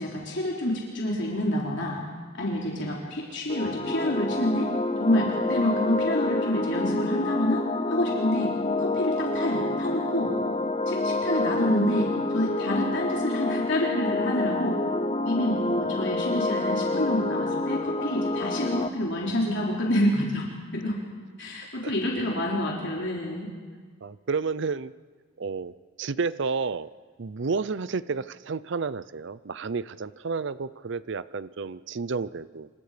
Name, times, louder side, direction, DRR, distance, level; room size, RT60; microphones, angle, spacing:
voice 1, 0.0-2.0 2.3-4.7 5.0-8.5 8.8-10.3 10.9-14.8 15.3-21.0 21.4-23.5, left 1 dB, 60° left, -3 dB, 3.8 m, -28 dB
sound 1, 3.5-18.9, left 2 dB, 30° left, 0.8 m, -28 dB
voice 2, 24.0-24.9 25.4-26.9 27.2-32.7, right 4 dB, 60° right, 16 dB, 0.6 m, -31 dB
28.0 x 26.0 x 5.1 m, 1.5 s
head